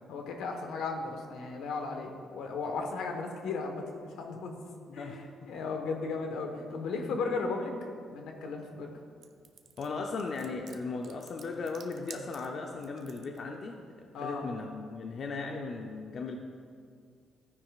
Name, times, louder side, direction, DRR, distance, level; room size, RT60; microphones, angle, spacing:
voice 1, 0.1-4.6 4.9-7.7 8.1-8.9 14.1-14.4, left 4 dB, 85° left, 3 dB, 1.3 m, -35 dB
voice 2, 4.9-5.2 9.8-16.4, left 4 dB, 55° left, 2 dB, 0.7 m, -37 dB
sound 1, 9.2-13.4, right 7 dB, 65° right, 0.7 m, -51 dB
13.5 x 9.7 x 2.5 m, 2.2 s
cardioid pair, 90°, 0 cm